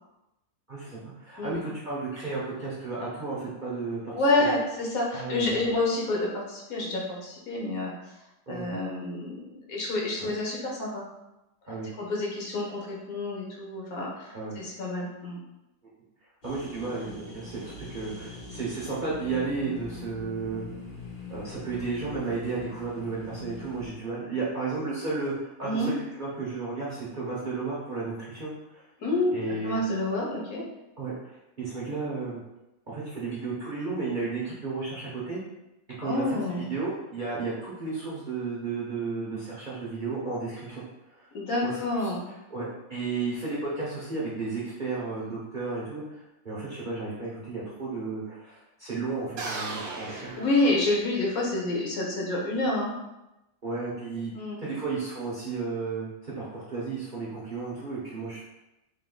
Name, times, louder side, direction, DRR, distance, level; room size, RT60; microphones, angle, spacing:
voice 1, 0.7-4.1 4.4-4.5 5.1-5.4 8.5-8.7 10.2-10.3 11.7-11.9 14.3-14.6 16.4-20.6 21.3-28.8 29.3-29.8 31.0-32.4 32.9-35.4 36.0-40.8 41.1-41.3 41.6-41.7 42.0-42.1 42.5-50.4 53.6-54.3 54.6-58.4, right 4 dB, 40° right, -7 dB, 0.8 m, -33 dB
voice 2, 4.1-7.9 8.5-11.0 12.0-15.4 25.6-25.9 29.0-29.4 29.6-30.6 36.0-36.7 41.3-42.2 50.1-52.9 54.4-54.6, left 2 dB, 65° left, -3 dB, 1.3 m, -28 dB
sound 1, 16.4-23.9, left 3 dB, 40° left, 0.8 m, -43 dB
sound 2, 49.4-51.3, right 3 dB, 75° right, 0.5 m, -36 dB
3.6 x 2.6 x 3.8 m, 0.93 s
omnidirectional pair, 1.7 m